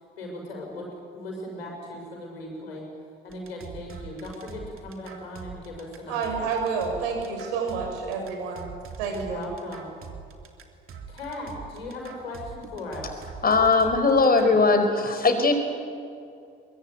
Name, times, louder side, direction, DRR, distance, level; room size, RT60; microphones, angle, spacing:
voice 1, 0.2-2.9 3.2-6.5 9.0-10.0 11.1-13.3, left 1 dB, 80° left, 0 dB, 6.1 m, -38 dB
sound 1, 3.3-14.6, right 6 dB, 45° right, 3.0 m, -43 dB
voice 2, 6.1-9.4, right 5 dB, 65° right, 3 dB, 6.0 m, -29 dB
voice 3, 13.4-15.5, left 3 dB, 30° left, 7 dB, 4.8 m, -19 dB
23.5 x 22.5 x 9.2 m, 2.5 s
figure-of-eight pair, 50°, 30 cm